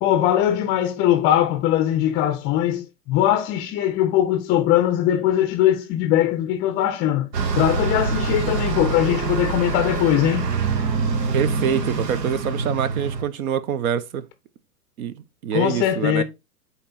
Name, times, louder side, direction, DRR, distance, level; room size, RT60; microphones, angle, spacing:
voice 1, 0.0-7.3 7.6-10.5 15.5-16.2, left 12 dB, 25° left, 0.5 m, -20 dB
Bus, 7.3-13.2, right 5 dB, 80° right, 1.2 m, -25 dB
voice 2, 11.3-14.2 15.0-16.2, right 8 dB, 60° right, 1.0 m, -25 dB
8.5 x 3.2 x 4.1 m
hypercardioid pair, 105°, 48 cm